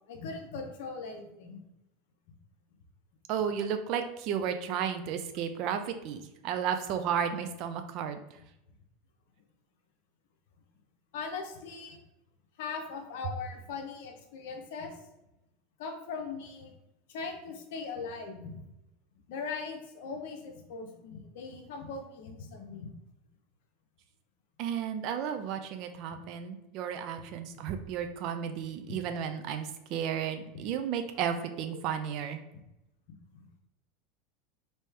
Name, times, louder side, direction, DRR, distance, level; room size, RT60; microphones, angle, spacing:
voice 1, 0.1-1.6 11.1-12.0 12.6-15.0 15.8-16.7 17.1-18.6 19.3-22.9 28.9-29.0 30.5-30.6 33.3-33.4, left 4 dB, 60° left, 4 dB, 0.6 m, -40 dB
voice 2, 3.3-8.2 24.6-32.4, right 8 dB, 50° right, 7 dB, 0.4 m, -33 dB
3.1 x 2.7 x 3.2 m, 0.89 s
figure-of-eight pair, 80°, 0 cm